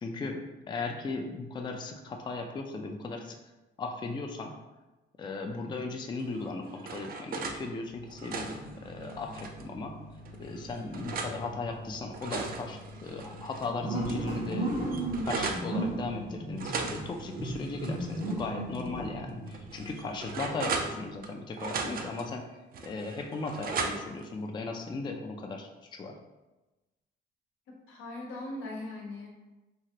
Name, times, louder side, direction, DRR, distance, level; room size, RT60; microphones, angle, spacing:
voice 1, 0.0-3.4 3.8-4.6 5.2-9.9 10.4-14.9 15.3-26.2, left 3 dB, 25° left, 3 dB, 0.3 m, -37 dB
sound 1, 6.3-7.6 8.0-9.7 10.3-11.4 11.9-13.7 14.1-14.2 14.4-15.7 16.6-18.4 18.7-18.9 19.5-21.3 21.6-22.3 22.7-24.2, right 4 dB, 45° right, 0.4 m, -37 dB
sound 2, 8.0-21.2, right 1 dB, 90° right, 1.1 m, -38 dB
voice 2, 27.7-29.3, left 2 dB, 90° left, -2 dB, 0.8 m, -40 dB
3.0 x 2.4 x 2.8 m, 1.1 s
cardioid pair, 90°, 20 cm